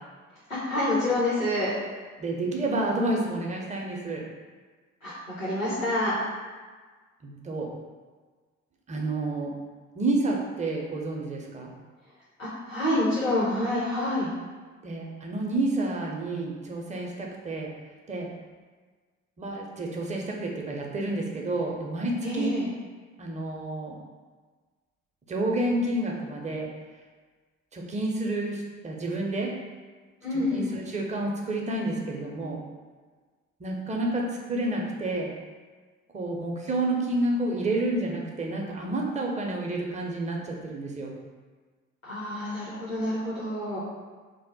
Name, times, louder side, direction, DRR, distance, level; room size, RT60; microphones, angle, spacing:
voice 1, 0.5-1.7 5.0-5.1 5.4-6.1 12.4-14.3 22.2-22.7 30.2-30.7 42.1-43.8, left 1 dB, 85° left, -10 dB, 0.8 m, -27 dB
voice 2, 2.2-4.2 7.2-7.7 8.9-9.5 10.0-11.7 14.8-17.7 18.1-18.3 19.4-22.5 23.2-24.0 25.3-26.7 27.7-29.5 30.5-32.6 33.6-35.3 36.1-41.1, right 2 dB, 20° right, -1 dB, 0.5 m, -29 dB
2.7 x 2.1 x 3.9 m, 1.4 s
figure-of-eight pair, 45°, 40 cm